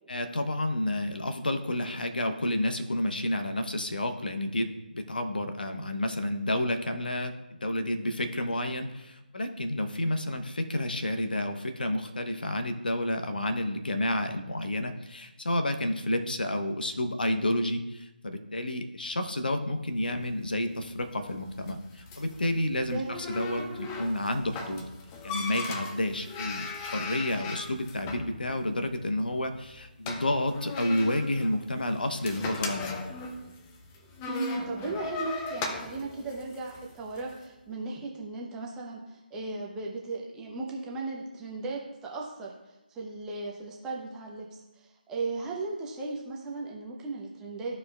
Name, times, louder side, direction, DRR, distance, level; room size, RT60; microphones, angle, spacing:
voice 1, 0.1-24.8 25.2-33.0, left 1 dB, 60° left, 7 dB, 0.9 m, -30 dB
sound 1, 20.1-37.3, left 4 dB, 10° left, 0.4 m, -39 dB
voice 2, 22.9-23.7 34.3-47.8, right 3 dB, 10° right, -3 dB, 0.8 m, -36 dB
13.5 x 4.7 x 2.4 m, 0.99 s
figure-of-eight pair, 155°, 5 cm